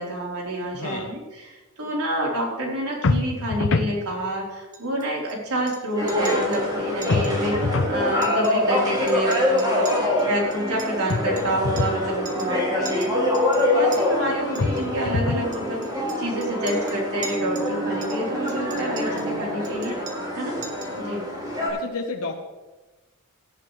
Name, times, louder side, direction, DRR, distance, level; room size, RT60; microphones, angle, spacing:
voice 1, 0.0-9.9 10.2-15.9 16.2-20.0 20.4-20.5 21.0-21.3, right 1 dB, 90° right, -2 dB, 4.1 m, -28 dB
voice 2, 0.7-1.1 21.7-22.4, left 3 dB, 80° left, 1 dB, 1.2 m, -31 dB
sound 1, 3.0-4.0 7.1-8.0 11.1-12.0 14.6-15.5, left 3 dB, 60° left, 0.7 m, -24 dB
Chink clink, 4.7-5.3 5.7-5.8 6.1-6.6 7.0-7.3 7.6-7.7 8.1-8.8 9.1-12.0 12.3-12.6 12.9-14.0 14.6-14.8 15.5-17.7 18.0-19.3 19.6-20.4 20.6-21.0, right 4 dB, 35° right, 1.7 m, -41 dB
sound 2, 6.0-21.7, left 1 dB, 20° right, 4.9 m, -25 dB
17.5 x 12.0 x 3.3 m, 1.2 s
head